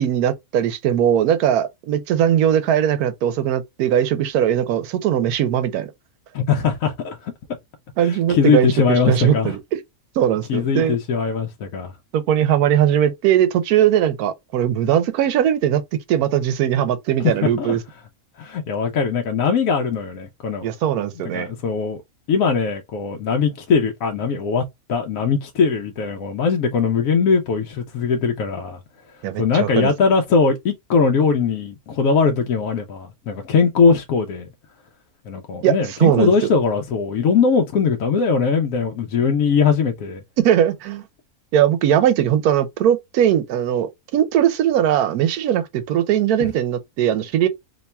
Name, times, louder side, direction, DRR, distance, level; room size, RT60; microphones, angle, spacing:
voice 1, 0.0-5.9 8.0-9.6 10.2-11.0 12.1-17.8 20.6-21.5 29.2-29.9 35.6-36.5 40.4-41.0 41.5-47.5, right 10 dB, 90° right, 1.1 m, -19 dB
voice 2, 6.3-7.3 8.0-9.5 10.5-11.9 17.2-17.8 18.4-20.7 21.3-22.0 22.3-24.6 24.9-28.8 29.4-34.5 35.3-40.2 46.4-46.5, left 5 dB, 70° left, 1.0 m, -20 dB
2.9 x 2.2 x 4.1 m
omnidirectional pair, 1.5 m